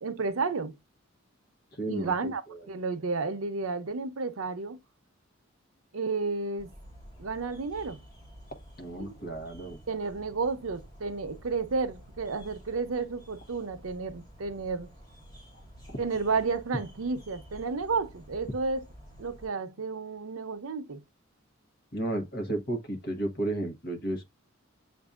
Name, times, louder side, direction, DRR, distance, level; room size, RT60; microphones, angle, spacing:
voice 1, 0.0-0.7 1.9-2.4 2.7-4.8 5.9-6.7 7.2-8.0 9.0-9.2 9.9-14.9 16.0-18.9 19.2-21.0, right 4 dB, 90° right, 0.7 m, -32 dB
voice 2, 1.7-2.6 8.8-9.8 15.5-15.6 15.9-16.0 21.9-24.2, right 1 dB, 50° left, 1.2 m, -33 dB
sound 1, 6.6-19.5, equal, 20° left, 1.4 m, -51 dB
7.9 x 2.7 x 2.3 m
head